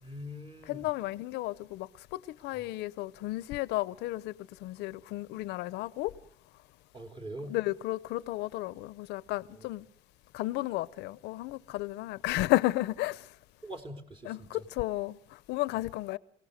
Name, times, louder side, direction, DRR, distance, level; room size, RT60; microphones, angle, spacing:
voice 1, 0.0-0.8 6.9-7.6 9.5-9.7 13.6-14.6, equal, 30° right, 3.4 m, -43 dB
voice 2, 0.7-6.1 7.5-9.9 10.3-13.3 14.2-16.2, left 18 dB, 90° left, 0.8 m, -33 dB
27.5 x 17.5 x 6.6 m
cardioid pair, 110°, 17 cm